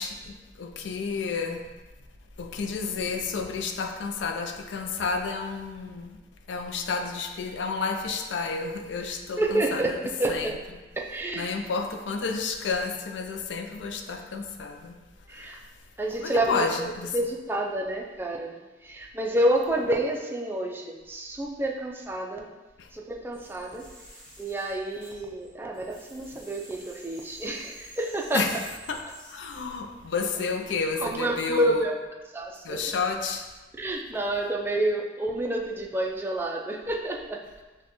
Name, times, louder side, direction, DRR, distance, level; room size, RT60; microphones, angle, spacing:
voice 1, 0.0-1.6 2.4-6.2 6.5-10.0 10.3-10.5 11.4-15.0 15.3-15.6 16.2-17.1 22.8-22.9 28.3-28.6 28.9-29.0 29.3-31.8 32.6-33.5, left 4 dB, 85° left, 4 dB, 0.4 m, -31 dB
voice 2, 9.4-10.6 11.0-11.5 15.3-15.6 16.0-16.7 17.1-22.5 22.9-23.8 24.4-28.5 31.0-32.0 32.3-32.8 33.8-37.4, right 1 dB, 15° right, -1 dB, 0.4 m, -29 dB
sound 1, 23.3-25.5 25.7-29.3, right 1 dB, 5° left, 0.8 m, -49 dB
6.1 x 2.2 x 2.9 m, 1.2 s
head